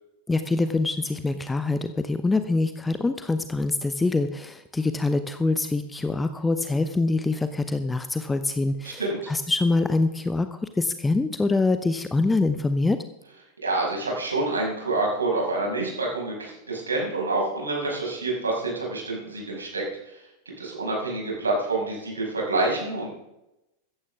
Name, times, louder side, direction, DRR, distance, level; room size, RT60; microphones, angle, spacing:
voice 1, 0.3-9.0 9.3-13.0, left 3 dB, 10° left, 10 dB, 0.7 m, -25 dB
voice 2, 8.8-9.3 13.6-19.9 20.6-23.2, right 2 dB, 75° right, -1 dB, 6.0 m, -27 dB
15.0 x 14.5 x 3.6 m, 0.89 s
figure-of-eight pair, 90°, 0 cm